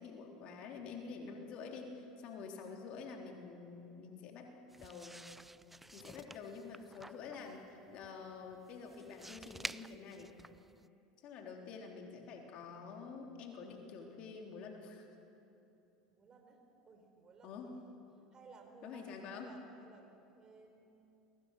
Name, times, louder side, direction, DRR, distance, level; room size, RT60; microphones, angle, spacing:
voice 1, 0.0-4.5 4.8-5.3 5.9-10.4 11.2-15.1 17.4-17.7 18.8-19.5, left 5 dB, 50° left, 2 dB, 3.6 m, -48 dB
sound 1, 4.7-10.9, right 2 dB, 10° right, 0.5 m, -50 dB
voice 2, 5.6-6.1 16.1-18.0 18.3-21.2, right 4 dB, 30° right, 4 dB, 4.6 m, -60 dB
29.5 x 22.0 x 6.6 m, 2.9 s
hypercardioid pair, 75°, 2 cm